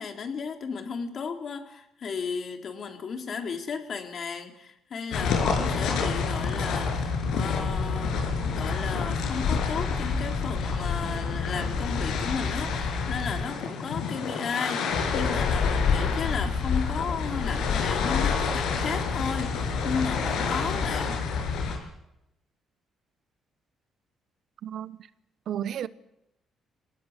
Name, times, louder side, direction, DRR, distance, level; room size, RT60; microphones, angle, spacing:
voice 1, 0.0-8.3 8.5-21.2, left 5 dB, 55° left, 3.9 m, -34 dB
sound 1, 5.1-21.8, left 5 dB, 85° left, 7.1 m, -27 dB
voice 2, 24.6-25.0 25.5-25.9, right 10 dB, 70° right, 1.1 m, -32 dB
26.0 x 19.5 x 8.3 m
cardioid pair, 90°, 0 cm